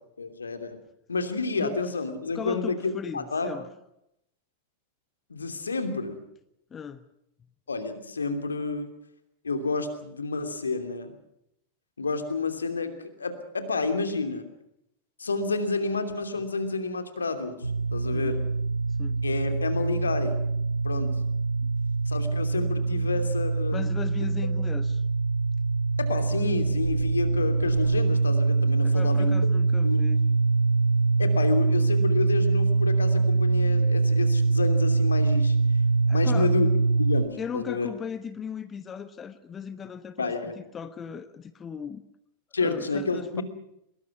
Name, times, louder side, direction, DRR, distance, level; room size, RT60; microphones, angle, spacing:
voice 1, 0.2-0.8 1.1-3.7 5.3-6.2 7.7-8.9 9.4-11.1 12.0-12.9 13.2-14.4 15.2-18.4 19.2-20.3 20.8-21.1 22.1-23.8 26.0-29.4 29.8-30.1 31.2-35.6 36.1-36.7 37.0-37.9 40.2-40.6 42.5-43.4, left 3 dB, 75° left, 8 dB, 2.9 m, -30 dB
voice 2, 2.3-3.7 6.7-7.0 18.1-18.5 19.0-19.2 21.6-21.7 23.7-25.0 28.8-30.2 36.1-36.5 37.4-42.0 42.6-43.4, left 7 dB, 20° left, 13 dB, 1.1 m, -37 dB
sound 1, 17.6-37.2, right 3 dB, 85° right, 0.9 m, -24 dB
24.0 x 22.0 x 6.0 m, 0.78 s
figure-of-eight pair, 90°, 0 cm